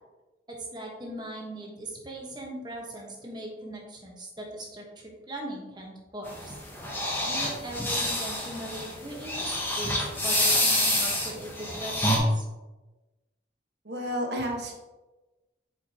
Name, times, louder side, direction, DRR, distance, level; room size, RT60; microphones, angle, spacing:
voice 1, 0.5-6.5 7.3-12.4, right 1 dB, 25° right, -1 dB, 1.2 m, -39 dB
sound 1, 6.3-12.2, left 1 dB, 10° left, 0.9 m, -27 dB
voice 2, 13.8-14.7, equal, 65° right, 0 dB, 1.4 m, -31 dB
7.9 x 5.0 x 2.9 m, 1.1 s
head